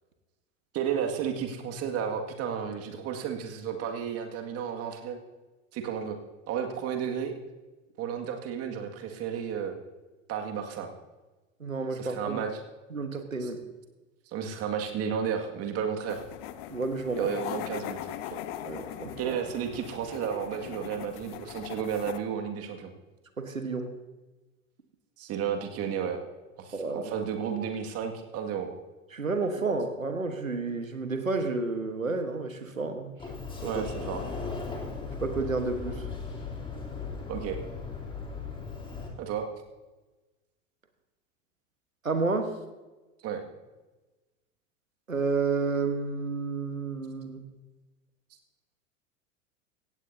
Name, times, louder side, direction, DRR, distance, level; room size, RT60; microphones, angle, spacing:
voice 1, 0.7-5.2 5.7-6.2 6.5-7.3 8.0-9.8 10.3-10.9 12.0-12.6 13.4-13.5 14.3-16.2 17.1-18.0 19.2-22.9 25.2-26.2 26.6-28.7 33.6-34.2 37.3-37.6 39.2-39.4 43.2-43.4, right 8 dB, 40° right, 4 dB, 2.1 m, -32 dB
voice 2, 11.6-12.4 12.9-13.6 16.7-17.3 18.6-19.4 23.4-23.9 26.7-27.1 29.1-33.1 33.6-33.8 35.2-36.1 42.0-42.5 45.1-47.4, right 4 dB, 90° right, 8 dB, 1.4 m, -30 dB
sound 1, 16.1-22.2, left 12 dB, 50° left, 0.9 m, -40 dB
Sliding door, 33.2-39.1, left 4 dB, 15° left, 3.2 m, -37 dB
17.0 x 16.0 x 2.8 m, 1.2 s
figure-of-eight pair, 80°, 39 cm